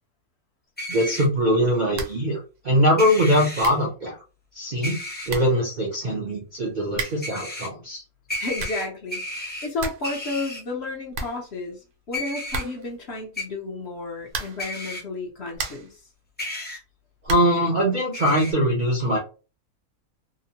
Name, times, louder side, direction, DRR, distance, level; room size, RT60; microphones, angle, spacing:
sound 1, 0.8-1.3 3.0-3.7 4.8-5.3 7.2-7.7 8.3-9.7 10.0-10.6 12.1-12.6 13.4-13.5 14.6-15.0 16.4-16.8 18.1-18.5, left 1 dB, 10° left, 0.5 m, -33 dB
voice 1, 0.9-2.4 2.6-4.2 4.5-4.9 5.3-8.0 17.2-19.2, equal, 55° right, -2 dB, 0.5 m, -22 dB
sound 2, 1.9-2.3 2.6-2.7 3.3-3.4 3.6-3.9 4.9-5.0 5.3-5.6 6.9-7.4 8.3-8.9 9.3-9.4 9.6-10.1 10.4-10.5 10.8-10.9 11.1-11.9 12.5-13.0 14.3-14.8 15.2-16.0 17.2-17.6, right 3 dB, 75° right, 1.1 m, -34 dB
voice 2, 8.4-16.0, left 3 dB, 55° left, 0 dB, 0.9 m, -32 dB
2.9 x 2.0 x 2.8 m, 0.34 s
omnidirectional pair, 1.5 m